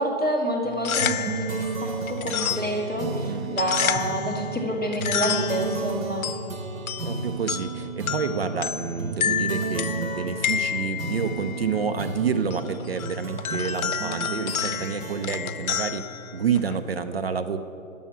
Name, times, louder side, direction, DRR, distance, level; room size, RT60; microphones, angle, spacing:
voice 1, 0.0-6.2, equal, ahead, -18 dB, 0.6 m, -28 dB
sound 1, 0.6-16.9, left 8 dB, 90° left, 0.7 m, -31 dB
sound 2, 1.0-16.9, right 4 dB, 70° right, 1.3 m, -33 dB
voice 2, 3.1-3.5 7.0-16.0 16.3-17.6, right 6 dB, 45° right, 9 dB, 0.5 m, -29 dB
10.5 x 7.1 x 7.3 m, 2.6 s
hypercardioid pair, 165°, 41 cm